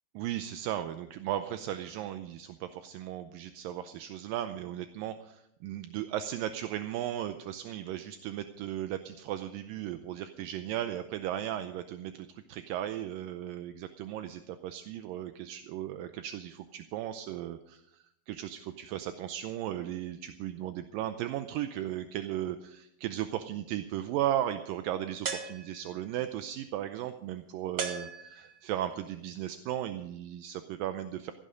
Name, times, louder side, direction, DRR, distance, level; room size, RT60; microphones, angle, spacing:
voice 1, 0.2-31.3, right 12 dB, 80° right, 9 dB, 2.1 m, -36 dB
sound 1, 25.2-26.1 27.8-28.8, right 5 dB, 55° right, 1.4 m, -37 dB
15.5 x 12.0 x 5.1 m, 0.77 s
omnidirectional pair, 4.5 m